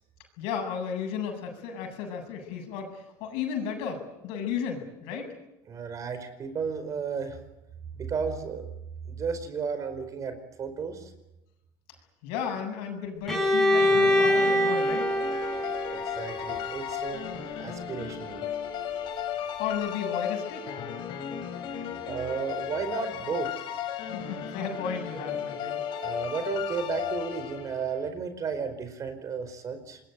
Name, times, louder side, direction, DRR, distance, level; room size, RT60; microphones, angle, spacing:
voice 1, 0.4-5.3 12.2-15.1 19.6-20.7 24.1-25.8, left 7 dB, 80° left, 4 dB, 7.9 m, -34 dB
voice 2, 5.7-7.4 7.9-8.7 9.1-11.1 15.9-17.2 17.6-18.5 22.0-23.7 26.0-30.0, right 6 dB, 35° right, 10 dB, 4.8 m, -33 dB
Bowed string instrument, 13.3-17.1, left 1 dB, 5° left, 6.8 m, -24 dB
sound 1, 13.7-28.0, left 9 dB, 55° left, 5.0 m, -35 dB
26.0 x 22.0 x 9.3 m, 0.93 s
cardioid pair, 125°, 9 cm